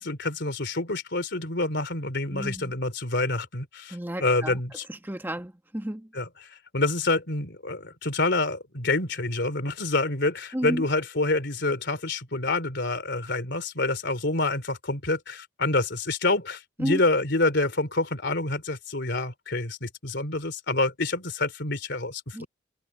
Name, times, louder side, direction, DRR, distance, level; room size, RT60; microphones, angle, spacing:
voice 1, 0.0-4.8 6.1-22.5, left 2 dB, 60° left, 3.6 m, -27 dB
voice 2, 2.3-2.7 3.9-4.6 4.9-6.1 10.5-10.9 16.8-17.0 22.3-22.5, equal, 10° right, 1.4 m, -32 dB
head